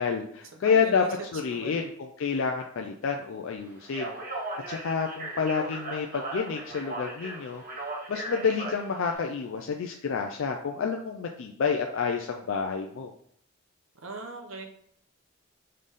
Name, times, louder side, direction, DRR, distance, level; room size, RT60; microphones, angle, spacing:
voice 1, 0.0-1.1 1.3-7.6 8.1-13.1, left 5 dB, 70° left, 3 dB, 0.4 m, -29 dB
voice 2, 0.5-1.8 14.0-14.6, right 3 dB, 75° right, 3 dB, 0.8 m, -41 dB
Speech, 3.8-9.2, right 2 dB, 40° right, 1.1 m, -37 dB
3.7 x 3.2 x 4.0 m, 0.64 s
head